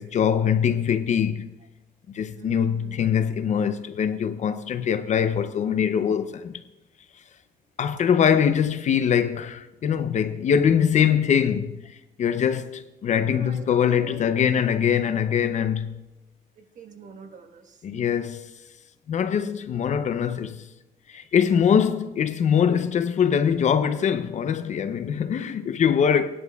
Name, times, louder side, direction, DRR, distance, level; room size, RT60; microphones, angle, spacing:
voice 1, 0.0-1.5 2.1-6.5 7.8-16.0 17.8-18.5 19.1-20.6 21.1-26.3, left 8 dB, 45° left, 0.6 m, -23 dB
voice 2, 2.3-3.0 13.0-13.7 14.0-14.7 16.5-17.8, right 5 dB, 50° right, 1.4 m, -45 dB
18.5 x 11.0 x 2.3 m
cardioid pair, 110°, 17 cm